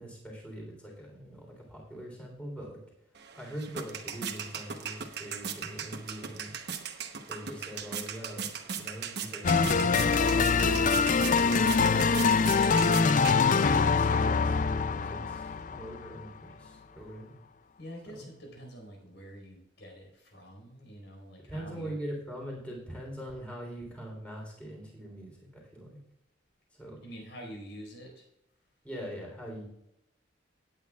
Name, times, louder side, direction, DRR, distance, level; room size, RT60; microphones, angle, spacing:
voice 1, 0.0-2.8 3.3-6.5 7.3-12.3 13.5-17.3 18.1-18.2 21.5-26.0 26.7-27.0 28.8-29.7, equal, 5° left, -1 dB, 3.5 m, -42 dB
sound 1, 3.2-13.9, right 7 dB, 55° right, 1.1 m, -39 dB
sound 2, 9.4-16.3, left 5 dB, 40° left, 0.4 m, -24 dB
voice 2, 17.8-22.0 27.0-28.2, equal, 70° left, 0 dB, 4.8 m, -46 dB
17.5 x 9.0 x 2.4 m, 0.79 s
head